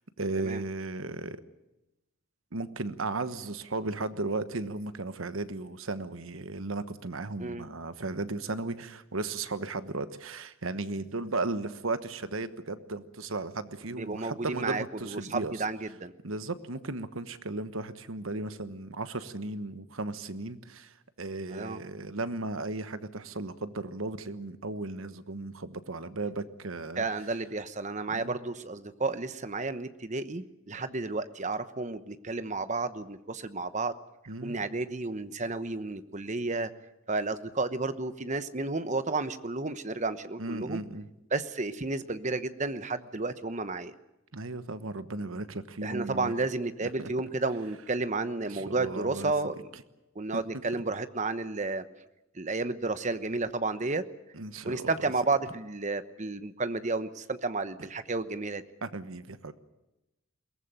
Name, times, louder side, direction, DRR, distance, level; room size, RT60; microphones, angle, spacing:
voice 1, 0.2-1.4 2.5-15.5 16.2-27.0 28.1-28.3 34.3-34.6 40.4-41.1 44.3-46.3 46.8-47.1 48.5-49.3 54.3-55.1 58.8-59.5, right 2 dB, 80° right, 12 dB, 1.2 m, -35 dB
voice 2, 14.0-16.1 21.5-21.8 27.0-33.9 34.4-36.7 37.1-40.8 41.3-43.9 45.8-49.5 50.1-51.8 52.3-54.0 54.6-58.6, right 3 dB, 35° right, 11 dB, 1.0 m, -32 dB
22.0 x 18.5 x 9.1 m, 0.95 s
head